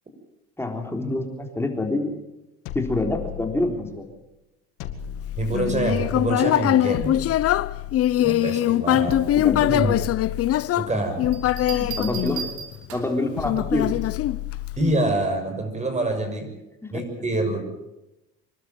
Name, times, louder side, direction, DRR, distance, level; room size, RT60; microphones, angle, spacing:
voice 1, 0.6-2.2 2.7-4.0 8.9-9.0 9.4-10.0 10.9-11.1 11.7-12.5 12.9-14.0 16.8-17.0, left 2 dB, 10° left, 3 dB, 3.7 m, -27 dB
sound 1, 2.7-4.0 4.8-6.4 6.9-8.4 9.1-10.7 11.2-12.6 13.4-15.0, left 11 dB, 85° left, 2.1 m, -34 dB
voice 2, 5.4-7.2 8.2-9.2 9.5-9.9 10.8-11.2 14.8-16.5 16.9-17.6, right 2 dB, 25° right, 6 dB, 6.4 m, -26 dB
Human voice, 5.5-12.9 13.4-14.9, left 13 dB, 55° left, 0.8 m, -22 dB
Bell, 11.3-13.3 14.9-15.2, right 8 dB, 75° right, 3.9 m, -36 dB
26.0 x 12.5 x 9.1 m, 0.95 s
cardioid pair, 105°, 29 cm